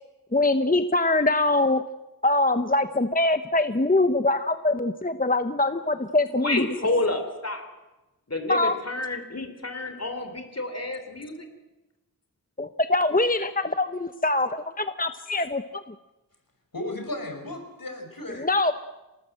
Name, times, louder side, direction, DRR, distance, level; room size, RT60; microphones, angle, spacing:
voice 1, 0.3-1.8 2.2-6.7 8.5-8.8 12.6-15.6 18.3-18.7, left 2 dB, 25° left, 9 dB, 1.0 m, -23 dB
voice 2, 6.4-7.6 8.3-11.5, left 2 dB, 45° left, 7 dB, 3.2 m, -29 dB
voice 3, 16.7-18.5, left 1 dB, 70° left, 5 dB, 5.4 m, -35 dB
26.5 x 18.5 x 7.8 m, 1.0 s
wide cardioid pair, 50°, 35 cm